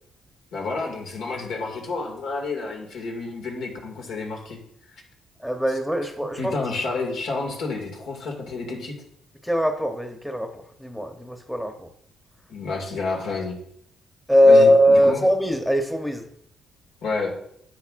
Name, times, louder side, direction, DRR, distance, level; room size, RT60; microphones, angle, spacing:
voice 1, 0.5-4.6 6.4-8.9 12.5-13.6 14.4-15.2 17.0-17.3, left 3 dB, 80° left, 0 dB, 2.2 m, -30 dB
voice 2, 5.4-6.5 9.4-11.9 14.3-16.2, equal, 5° left, 5 dB, 1.0 m, -20 dB
10.5 x 8.1 x 2.5 m, 0.71 s
cardioid pair, 90°, 0 cm